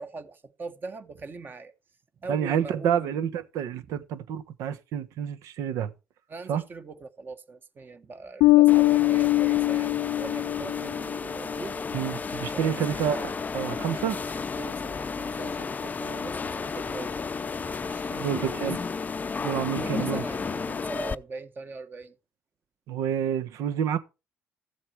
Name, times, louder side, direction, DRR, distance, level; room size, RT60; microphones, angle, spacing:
voice 1, 0.0-1.7 2.2-3.2 6.3-11.8 12.5-13.1 14.3-17.2 17.9-18.8 19.7-22.1, right 3 dB, 35° right, 1.6 m, -41 dB
voice 2, 2.3-5.9 6.5-6.6 11.9-14.2 18.2-18.8 19.4-20.2 22.9-24.0, right 9 dB, 75° right, 1.2 m, -28 dB
Bass guitar, 8.4-11.1, left 19 dB, 85° left, 0.5 m, -21 dB
sound 1, 8.7-21.1, left 5 dB, 30° left, 0.6 m, -33 dB
13.5 x 7.4 x 4.7 m
supercardioid pair, 70°, 6 cm